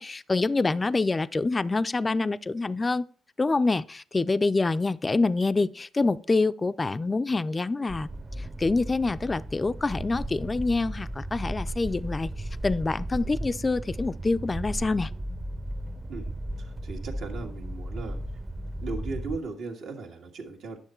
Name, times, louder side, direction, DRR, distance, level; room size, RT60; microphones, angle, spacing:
voice 1, 0.0-3.1 3.4-8.1 8.4-12.3 12.6-15.1, left 3 dB, 25° left, 0.4 m, -26 dB
sound 1, 7.9-19.4, right 1 dB, 25° right, 0.7 m, -35 dB
voice 2, 16.6-18.2 18.8-20.8, right 4 dB, 80° right, 1.8 m, -37 dB
9.9 x 6.6 x 4.3 m
cardioid pair, 90°, 0 cm